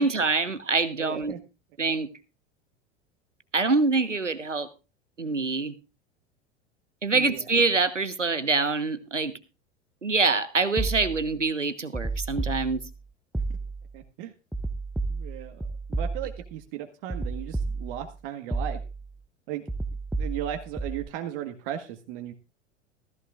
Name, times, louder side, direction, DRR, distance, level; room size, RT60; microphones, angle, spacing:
voice 1, 0.0-1.4 1.8-2.1 3.5-4.7 5.2-5.7 7.0-9.3 10.0-12.8, right 3 dB, 90° right, 13 dB, 1.2 m, -25 dB
voice 2, 1.0-1.4 7.1-7.4 13.9-14.3 15.1-15.6 15.9-18.8 19.5-19.6 20.2-22.3, right 11 dB, 50° right, 6 dB, 1.6 m, -36 dB
sound 1, 10.8-11.4 11.9-13.0 13.3-14.0 14.5-16.6 17.1-18.2 18.5-19.1 19.7-21.1, right 3 dB, ahead, 0.7 m, -32 dB
16.5 x 15.0 x 2.5 m, 0.31 s
figure-of-eight pair, 80°, 36 cm